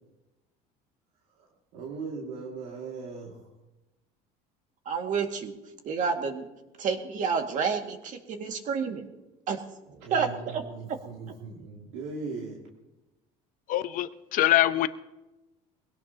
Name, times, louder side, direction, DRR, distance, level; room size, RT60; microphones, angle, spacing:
voice 1, 1.4-3.5 10.0-12.7, right 4 dB, 85° right, 2.3 m, -39 dB
voice 2, 4.9-5.5 5.8-6.5 6.8-9.1 9.5-9.6 10.1-10.6 10.9-11.0, right 6 dB, 50° right, 2.0 m, -29 dB
voice 3, 13.7-14.9, left 14 dB, 55° left, 0.8 m, -24 dB
22.0 x 17.0 x 2.9 m
cardioid pair, 110°, 16 cm